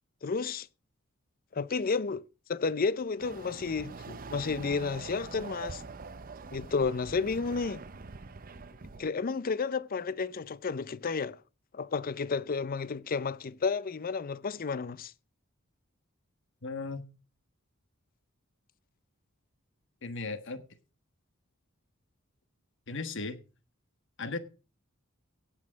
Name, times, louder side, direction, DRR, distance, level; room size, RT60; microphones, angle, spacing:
voice 1, 0.2-0.7 1.5-2.2 2.5-5.8 6.5-7.8 9.0-11.4 11.7-15.1, left 4 dB, 45° left, 0.5 m, -31 dB
Chatter / Car passing by / Motorcycle, 3.2-9.1, right 4 dB, 45° right, 0.7 m, -44 dB
voice 2, 16.6-17.1 20.0-20.6 22.9-23.4 24.2-24.4, left 3 dB, 60° left, 1.3 m, -36 dB
17.0 x 6.2 x 5.1 m
head